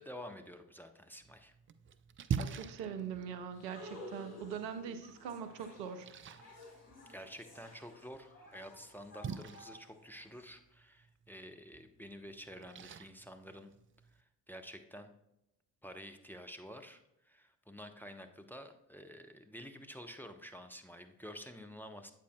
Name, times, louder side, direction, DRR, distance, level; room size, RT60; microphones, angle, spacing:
voice 1, 0.0-1.5 7.1-13.7 14.1-15.1 15.8-22.1, equal, 5° left, 5 dB, 0.7 m, -50 dB
Splash splatter, 1.2-14.2, right 7 dB, 25° right, 0.4 m, -46 dB
voice 2, 2.4-6.1, right 7 dB, 80° right, 9 dB, 0.8 m, -42 dB
sound 1, 3.5-10.4, left 1 dB, 80° left, 2.3 m, -54 dB
8.2 x 7.7 x 2.2 m, 0.86 s
figure-of-eight pair, 45°, 50 cm